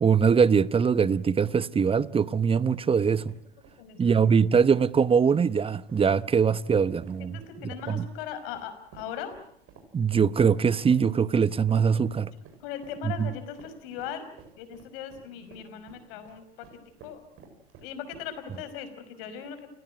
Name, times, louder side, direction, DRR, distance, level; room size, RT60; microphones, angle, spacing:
voice 1, 0.0-3.3 4.0-7.4 7.9-8.1 9.9-12.3 13.2-13.3, right 6 dB, 15° right, 1.0 m, -22 dB
sound 1, 0.7-19.0, right 5 dB, 45° right, 7.7 m, -54 dB
voice 2, 3.8-4.3 7.2-9.3 12.6-14.3 14.6-16.7 17.0-17.2 17.8-19.7, left 8 dB, 60° left, 5.3 m, -39 dB
29.5 x 17.5 x 9.4 m
hypercardioid pair, 85°, 31 cm